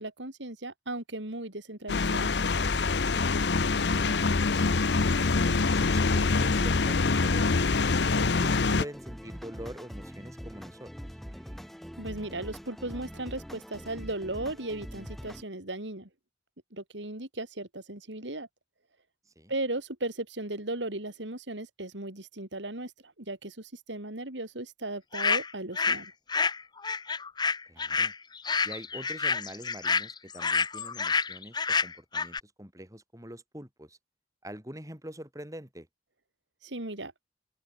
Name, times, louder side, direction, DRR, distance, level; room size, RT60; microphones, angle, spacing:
voice 1, 0.0-2.3 12.0-16.1 16.7-18.5 19.5-26.1 36.6-37.1, right 2 dB, 85° right, 4.4 m, -36 dB
sound 1, 1.9-8.9, left 4 dB, 70° left, 0.8 m, -25 dB
voice 2, 5.5-7.7 8.1-10.9 19.4-19.5 27.7-28.1 28.6-34.0 34.4-35.9, equal, 20° right, 7.3 m, -44 dB
sound 2, 8.2-15.4, equal, ahead, 1.6 m, -43 dB
sound 3, 25.1-26.0 26.3-32.4, left 5 dB, 25° left, 0.9 m, -28 dB
open air
head